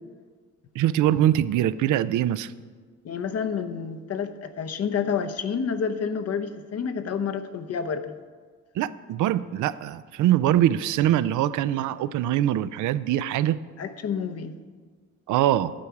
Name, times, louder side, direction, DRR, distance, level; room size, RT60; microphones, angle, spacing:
voice 1, 0.8-2.5 8.8-13.6 15.3-15.7, right 12 dB, 80° right, 15 dB, 0.5 m, -23 dB
voice 2, 3.0-8.1 13.8-14.5, left 6 dB, 55° left, 10 dB, 0.8 m, -29 dB
11.5 x 4.7 x 8.4 m, 1.5 s
cardioid pair, 90°, 30 cm